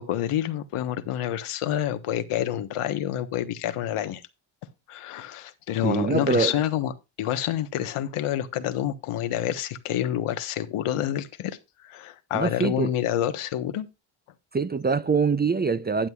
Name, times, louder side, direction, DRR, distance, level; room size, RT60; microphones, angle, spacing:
voice 1, 0.0-4.2 4.9-6.9 7.2-11.6 11.8-13.9, left 11 dB, 85° left, 1.3 m, -28 dB
voice 2, 5.8-6.6 12.3-12.9 14.5-16.1, right 4 dB, 20° right, 0.5 m, -24 dB
12.0 x 9.1 x 2.4 m
cardioid pair, 85°, 50 cm